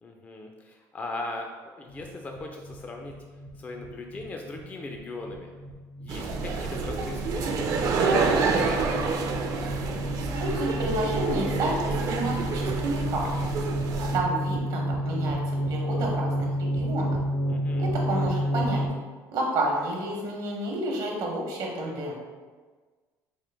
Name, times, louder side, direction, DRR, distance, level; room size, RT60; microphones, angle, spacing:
voice 1, 0.0-3.1 3.6-5.5 6.0-7.7 7.9-9.0 17.5-17.9, left 2 dB, 20° left, 2 dB, 0.3 m, -39 dB
sound 1, 1.9-18.9, equal, 65° left, 0.6 m, -31 dB
sound 2, 6.1-14.2, right 4 dB, 50° right, 0.4 m, -28 dB
voice 2, 10.2-13.7 14.1-17.2 17.8-18.8 19.3-22.1, right 1 dB, 70° right, -1 dB, 0.9 m, -30 dB
4.3 x 2.1 x 3.3 m, 1.4 s
cardioid pair, 115°, 7 cm